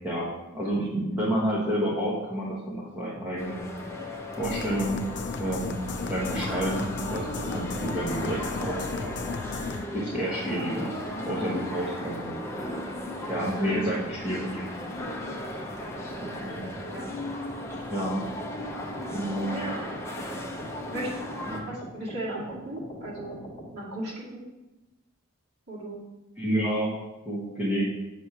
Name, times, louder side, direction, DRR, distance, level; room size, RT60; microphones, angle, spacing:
voice 1, 0.0-3.6 4.4-5.0 5.4-5.8 6.1-9.1 9.9-11.0 11.2-12.3 13.3-14.6 16.4-16.7 17.9-18.2 19.1-19.6 21.4-21.6 26.4-27.8, right 1 dB, 10° right, -8 dB, 1.1 m, -29 dB
voice 2, 0.5-1.0 16.8-17.1 17.6-17.9 19.4-20.0 20.9-21.1 21.6-23.4 23.7-24.4 25.7-26.0 26.5-26.7, right 1 dB, 50° right, -7 dB, 2.2 m, -37 dB
sound 1, 3.4-21.6, left 1 dB, 15° left, 0.6 m, -36 dB
sound 2, 4.4-9.9, left 4 dB, 55° left, 0.4 m, -35 dB
sound 3, 15.0-23.7, equal, 30° left, 1.0 m, -43 dB
7.2 x 3.2 x 5.7 m, 1.0 s
head